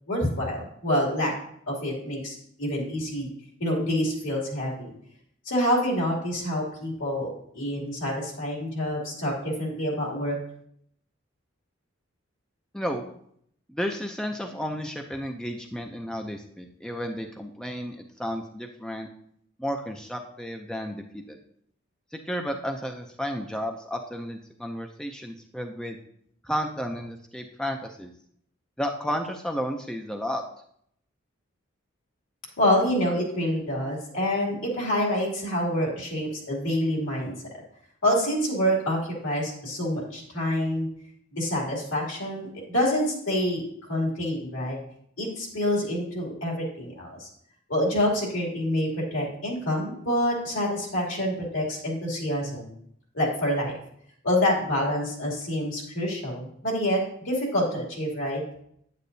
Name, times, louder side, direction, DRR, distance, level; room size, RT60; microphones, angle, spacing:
voice 1, 0.1-1.3 1.7-3.3 3.6-4.9 5.4-10.4 32.6-37.3 38.0-40.9 41.3-43.6 43.9-44.8 45.2-47.3 47.7-52.7 53.1-53.7 54.2-57.0 57.2-58.4, left 1 dB, 80° left, -2 dB, 2.8 m, -27 dB
voice 2, 12.7-13.1 13.7-19.1 19.6-21.4 22.1-26.0 26.4-28.1 28.8-30.4, equal, 5° left, 4 dB, 0.4 m, -32 dB
8.9 x 8.4 x 2.7 m, 0.68 s
head